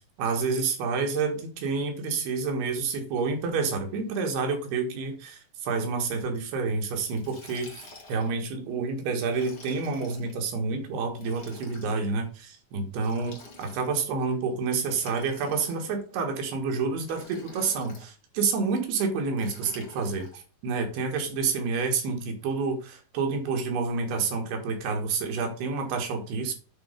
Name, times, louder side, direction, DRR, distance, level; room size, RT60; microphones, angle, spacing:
voice 1, 0.2-7.7 8.1-20.3 20.6-26.5, right 4 dB, 90° right, 3 dB, 3.7 m, -29 dB
Liquid, 7.0-8.4 9.2-10.3 11.1-12.0 13.0-14.1 14.8-16.0 17.0-18.1 19.4-20.4, left 2 dB, 35° left, 2.1 m, -48 dB
8.7 x 4.2 x 5.1 m, 0.38 s
omnidirectional pair, 4.5 m